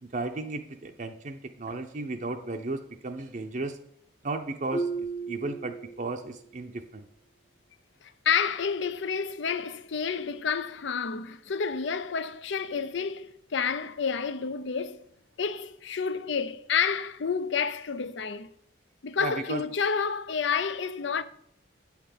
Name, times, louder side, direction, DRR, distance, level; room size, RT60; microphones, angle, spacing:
voice 1, 0.0-3.8 4.2-7.1 19.2-19.6, right 3 dB, 40° right, 0.6 m, -35 dB
Marimba xylophone, 4.7-6.5, right 3 dB, 35° left, 0.9 m, -34 dB
voice 2, 8.2-15.0 15.4-18.5 19.0-21.2, left 6 dB, 65° left, 0.5 m, -29 dB
8.6 x 5.9 x 6.6 m
head